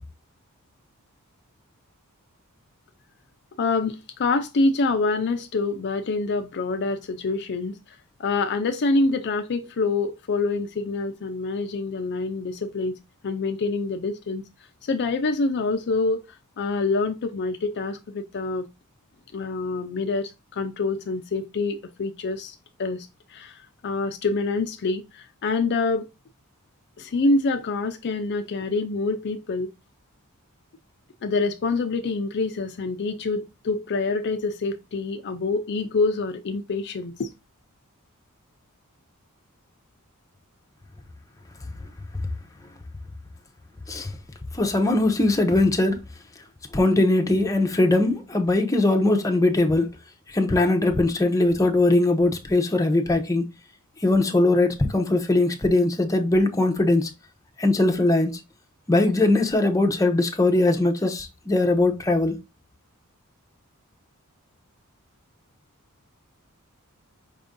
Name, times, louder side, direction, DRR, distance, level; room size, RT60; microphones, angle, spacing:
voice 1, 3.6-7.8 8.2-13.0 13.2-14.4 14.8-16.2 16.6-18.7 19.3-26.1 27.0-29.7 31.2-37.3, left 3 dB, 50° left, 0.4 m, -26 dB
voice 2, 44.5-46.2 46.7-49.9 50.3-53.5 54.0-57.1 57.6-58.3 58.9-62.4, left 2 dB, 15° left, 0.7 m, -21 dB
5.4 x 2.6 x 3.6 m
head